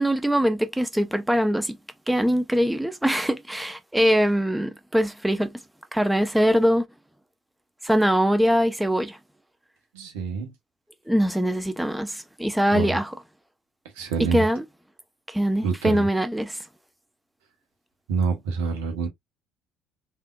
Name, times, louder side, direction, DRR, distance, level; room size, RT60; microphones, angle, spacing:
voice 1, 0.0-1.8 2.1-5.6 5.9-6.9 7.8-9.2 11.1-13.1 14.2-14.6 15.3-16.6, equal, 5° right, 0.7 m, -22 dB
voice 2, 9.9-10.5 12.7-13.0 13.9-14.5 15.6-16.1 18.1-19.1, right 5 dB, 75° right, 1.1 m, -27 dB
3.5 x 2.7 x 2.3 m
hypercardioid pair, 55°, 0 cm